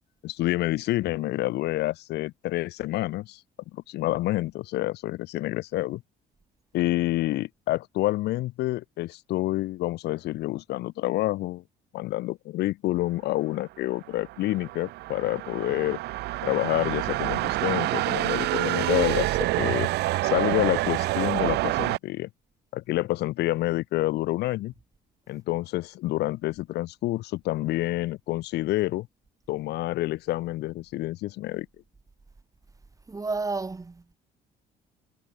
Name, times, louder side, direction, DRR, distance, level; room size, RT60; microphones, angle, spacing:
voice 1, 0.2-3.4 3.7-6.0 6.7-11.6 11.9-16.0 16.4-19.9 20.2-22.3 22.7-24.7 25.3-29.1 29.5-31.7, left 17 dB, 80° left, 2.5 m, -28 dB
sound 1, 14.0-22.0, right 18 dB, 80° right, 0.9 m, -27 dB
voice 2, 33.1-34.1, right 3 dB, 20° right, 4.2 m, -31 dB
cardioid pair, 110°, 17 cm